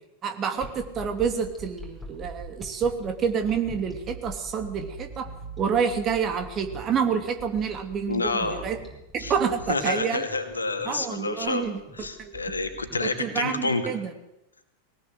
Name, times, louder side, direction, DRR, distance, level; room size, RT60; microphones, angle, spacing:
voice 1, 0.2-5.3 5.6-8.8 9.1-10.2 10.8-11.8 12.2-12.3 13.0-14.1, right 6 dB, 30° right, 6 dB, 2.9 m, -28 dB
sound 1, 0.6-13.7, right 2 dB, 5° right, 4.9 m, -43 dB
voice 2, 8.1-8.6 9.2-9.3 9.7-13.9, left 3 dB, 75° left, 7 dB, 2.5 m, -29 dB
20.5 x 18.0 x 7.8 m, 0.88 s
figure-of-eight pair, 90°, 0 cm